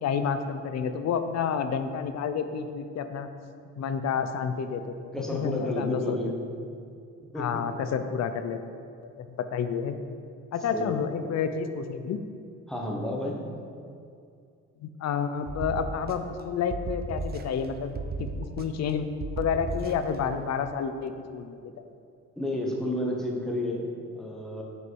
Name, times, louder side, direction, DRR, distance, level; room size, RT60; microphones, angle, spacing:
voice 1, 0.0-3.3 3.8-6.2 7.4-8.6 9.2-10.0 10.5-12.2 14.8-19.1 19.4-21.9, left 6 dB, 60° left, 9 dB, 0.6 m, -30 dB
voice 2, 5.1-6.3 6.7-6.9 7.3-7.8 10.7-11.0 12.7-13.5 22.4-24.6, left 1 dB, ahead, -1 dB, 1.1 m, -31 dB
sound 1, 15.5-16.4 16.7-17.7 18.0-18.9 19.2-20.2, right 3 dB, 35° right, 0.5 m, -35 dB
6.5 x 5.0 x 4.6 m, 2.4 s
cardioid pair, 90°, 30 cm